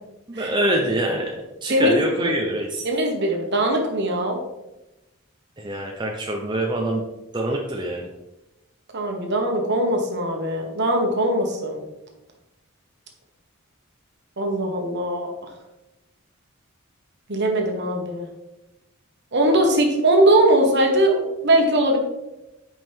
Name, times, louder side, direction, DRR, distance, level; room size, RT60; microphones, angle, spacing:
voice 1, 0.3-1.3 1.6-2.8 5.6-7.0 7.3-8.1, right 1 dB, 20° right, 0 dB, 0.7 m, -25 dB
voice 2, 1.7-2.3 2.8-4.4 8.9-11.8 14.4-15.3 17.3-18.3 19.3-22.0, right 1 dB, 55° right, 2 dB, 1.5 m, -20 dB
8.3 x 5.4 x 3.6 m, 0.96 s
head